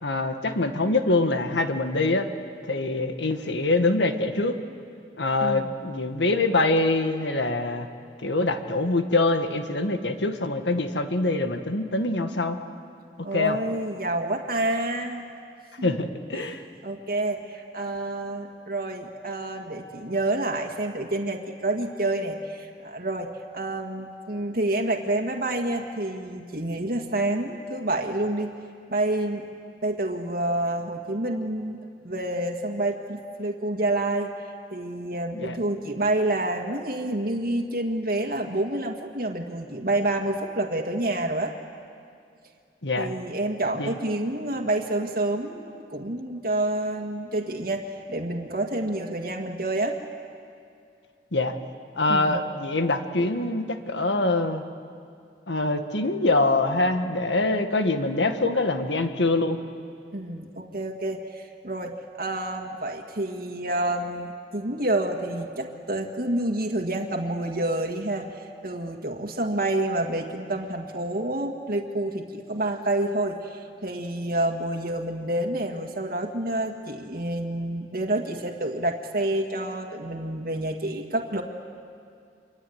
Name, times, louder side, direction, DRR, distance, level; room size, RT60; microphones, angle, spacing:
voice 1, 0.0-2.3 2.6-4.6 5.2-7.9 8.2-12.6 13.3-13.6 15.8-16.6 35.3-35.5 42.8-43.1 43.8-44.0 51.3-51.6 52.0-54.6 55.5-59.6, left 2 dB, 90° left, 7 dB, 1.8 m, -24 dB
voice 2, 13.2-15.2 15.8-16.0 16.3-16.5 16.8-28.5 28.9-29.4 29.8-31.8 32.0-34.3 34.7-41.5 43.0-50.0 52.1-52.5 60.1-68.4 68.6-81.4, right 1 dB, 55° right, 2 dB, 1.9 m, -28 dB
26.5 x 24.0 x 9.5 m, 2.4 s
head